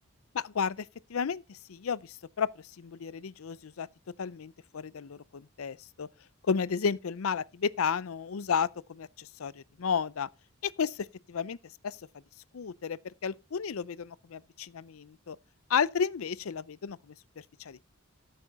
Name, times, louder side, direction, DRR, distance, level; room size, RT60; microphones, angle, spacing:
voice 1, 0.3-2.5 2.8-3.9 4.2-6.1 6.5-10.3 10.6-11.6 11.8-12.0 12.5-15.4 15.7-17.1 17.6-17.8, left 6 dB, 85° left, 0.5 m, -32 dB
13.0 x 6.8 x 4.1 m
head